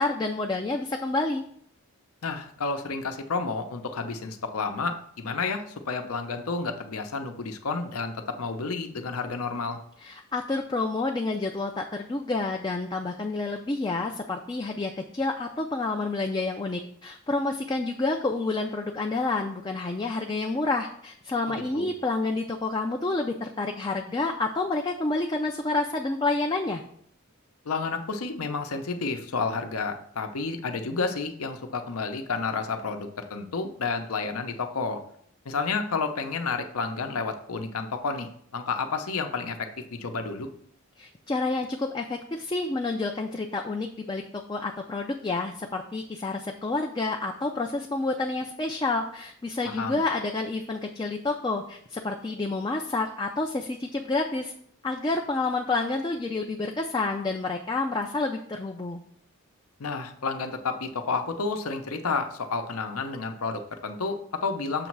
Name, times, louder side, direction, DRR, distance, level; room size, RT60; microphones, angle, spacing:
voice 1, 0.0-1.4 10.0-26.8 41.0-54.5 54.8-59.0, left 3 dB, 20° left, 2 dB, 0.3 m, -29 dB
voice 2, 2.2-9.8 21.5-21.9 27.7-35.0 35.4-39.6 39.9-40.5 49.6-50.0 59.8-64.9, left 4 dB, 85° left, 6 dB, 0.7 m, -31 dB
6.8 x 3.1 x 5.9 m, 0.64 s
head